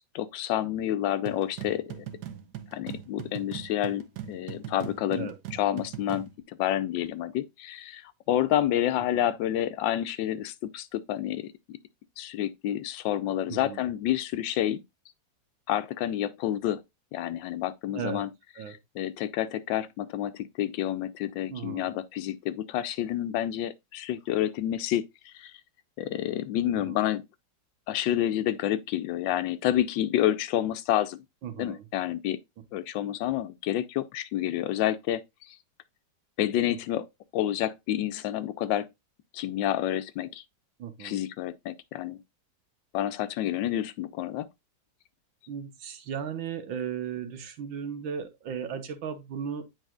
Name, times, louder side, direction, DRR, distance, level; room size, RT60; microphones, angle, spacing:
voice 1, 0.0-2.0 2.7-11.8 12.2-14.8 15.7-16.8 17.1-18.3 18.7-25.5 26.0-27.2 27.9-31.2 31.6-32.4 32.7-35.2 35.5-35.6 36.4-37.0 37.3-38.9 39.3-40.4 41.0-42.2 42.9-44.5, left 12 dB, 80° left, 1.3 m, -29 dB
sound 1, 1.3-6.4, right 10 dB, 65° right, 1.2 m, -40 dB
voice 2, 13.5-13.9 17.9-18.3 18.6-18.8 21.5-21.9 26.7-27.0 31.4-31.9 40.8-41.2 45.5-49.6, right 7 dB, 80° right, 1.8 m, -36 dB
9.0 x 4.8 x 2.3 m
omnidirectional pair, 2.1 m